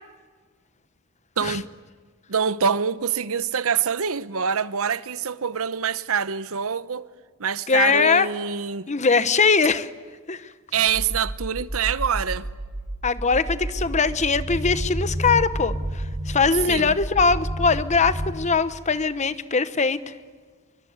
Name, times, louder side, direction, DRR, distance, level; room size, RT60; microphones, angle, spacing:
voice 1, 1.4-1.7 2.3-7.1 7.4-8.9 10.7-12.5 16.7-16.9, right 7 dB, 65° right, 0.8 m, -25 dB
voice 2, 7.7-8.3 8.9-9.9 10.3-10.5 13.0-20.1, left 4 dB, 30° left, 1.0 m, -21 dB
sound 1, 10.9-18.4, right 1 dB, 15° right, 4.6 m, -30 dB
25.0 x 23.5 x 9.5 m
head